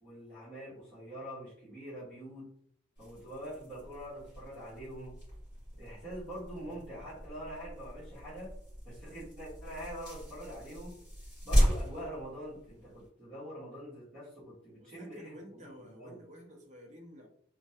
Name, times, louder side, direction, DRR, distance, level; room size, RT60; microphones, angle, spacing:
voice 1, 0.0-2.5 3.0-5.2 5.8-8.5 8.8-11.0 11.4-15.3 15.7-16.2, equal, 5° left, -14 dB, 1.4 m, -44 dB
sound 1, 2.9-13.1, equal, 20° left, 1.5 m, -35 dB
voice 2, 14.7-17.3, equal, 35° right, 2 dB, 0.6 m, -51 dB
3.1 x 2.2 x 2.7 m, 0.62 s
head